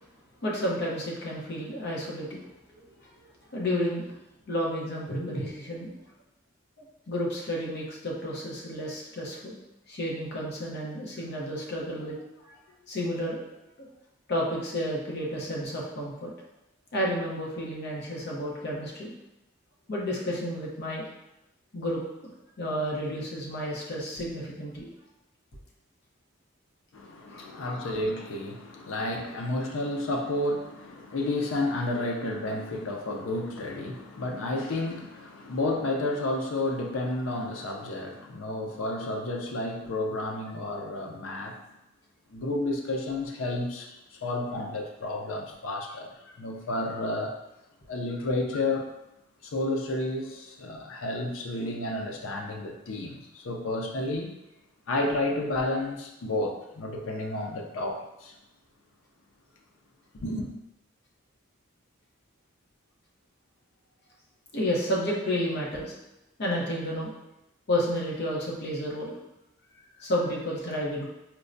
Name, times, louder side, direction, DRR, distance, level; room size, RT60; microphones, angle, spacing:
voice 1, 0.4-2.4 2.7-2.8 3.5-4.1 4.5-5.9 7.1-9.6 9.9-12.2 12.5-12.6 12.9-13.4 13.8-13.9 14.3-16.3 16.9-19.1 19.9-21.0 21.7-22.3 22.6-24.9 27.3-27.7 64.5-65.9 66.4-67.1 67.7-69.2 70.0-71.0, equal, 55° left, -3 dB, 0.8 m, -31 dB
voice 2, 26.9-41.6 42.3-47.4 47.9-48.9 49.4-54.4 54.9-58.4 60.1-60.5, left 2 dB, 90° left, 2 dB, 0.5 m, -31 dB
4.4 x 2.1 x 2.5 m, 0.91 s
head